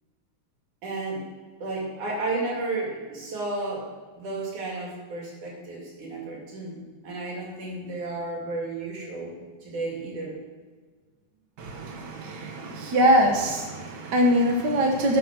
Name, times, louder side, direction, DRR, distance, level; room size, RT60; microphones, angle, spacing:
voice 1, 0.8-1.3 1.6-10.4, right 2 dB, 80° right, -3 dB, 4.3 m, -33 dB
voice 2, 11.6-15.2, equal, 65° right, 1 dB, 1.1 m, -23 dB
12.5 x 6.7 x 6.1 m, 1.5 s
omnidirectional pair, 3.4 m